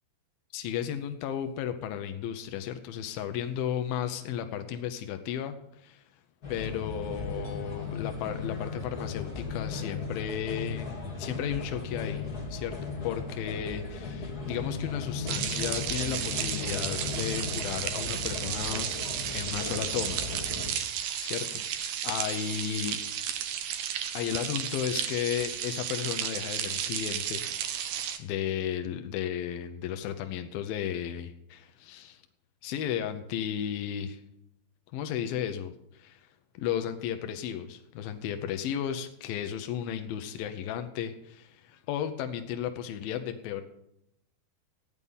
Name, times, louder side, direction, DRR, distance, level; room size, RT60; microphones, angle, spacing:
voice 1, 0.5-6.0 6.5-20.2 21.2-23.0 24.1-27.4 28.2-32.2 32.6-34.2 34.9-36.3 36.5-43.6, left 9 dB, 80° left, 7 dB, 2.1 m, -34 dB
sound 1, 6.4-20.7, left 4 dB, 25° left, 2.2 m, -36 dB
sound 2, 15.3-28.2, right 9 dB, 75° right, 2.0 m, -33 dB
14.5 x 9.7 x 5.4 m, 0.79 s
omnidirectional pair, 5.2 m